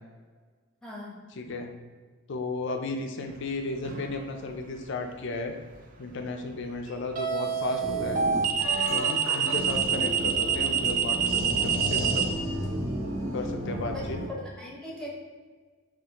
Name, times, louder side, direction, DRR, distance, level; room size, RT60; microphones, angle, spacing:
voice 1, 0.8-1.2 14.4-15.1, equal, 5° left, -4 dB, 0.8 m, -40 dB
voice 2, 1.3-1.7 2.3-5.5 6.0-8.2 8.9-12.3 13.3-14.2, left 3 dB, 55° left, 4 dB, 0.4 m, -34 dB
sound 1, 3.9-4.2 7.2-12.2, right 7 dB, 40° right, 0.4 m, -26 dB
sound 2, 7.8-14.3, right 1 dB, 85° right, 1.0 m, -33 dB
5.6 x 2.5 x 2.9 m, 1.5 s
head